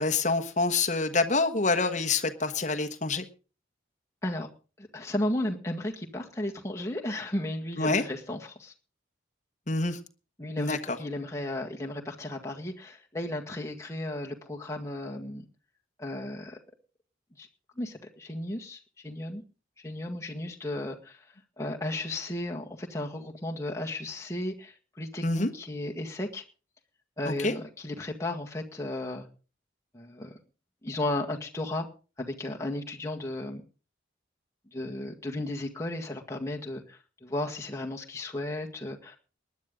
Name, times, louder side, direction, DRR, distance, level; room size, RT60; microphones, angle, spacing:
voice 1, 0.0-3.2 7.8-8.0 9.7-10.0 10.6-11.0 25.2-25.5 27.2-27.6, left 3 dB, 40° left, 1.3 m, -26 dB
voice 2, 4.8-8.7 10.4-15.5 16.0-16.6 17.4-17.5 17.8-19.4 19.8-21.3 21.6-26.4 27.2-29.3 29.9-30.3 30.8-31.9 32.2-33.6 34.7-39.2, left 1 dB, 15° left, 1.8 m, -34 dB
19.5 x 11.0 x 3.8 m
head